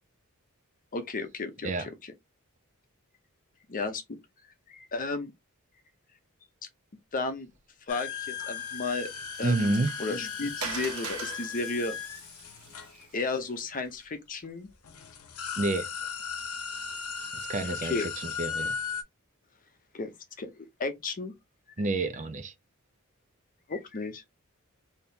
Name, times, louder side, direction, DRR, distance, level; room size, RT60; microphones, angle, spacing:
voice 1, 0.9-1.9 3.7-4.0 4.7-5.3 7.1-7.5 7.9-9.1 9.4-9.7 10.0-12.0 12.8-14.7 17.6-18.1 19.9-20.1 20.4-21.3 22.0-22.1 23.7-24.2, left 3 dB, 40° left, 0.7 m, -33 dB
sound 1, 7.9-13.6 14.4-14.5 14.8-19.0, left 6 dB, 80° left, 0.8 m, -37 dB
Water, 8.4-13.8, right 5 dB, 85° right, 1.2 m, -43 dB
voice 2, 9.4-9.9 15.6-15.9 17.4-18.7 21.8-22.5, right 2 dB, 35° right, 0.5 m, -29 dB
3.6 x 2.8 x 2.7 m
head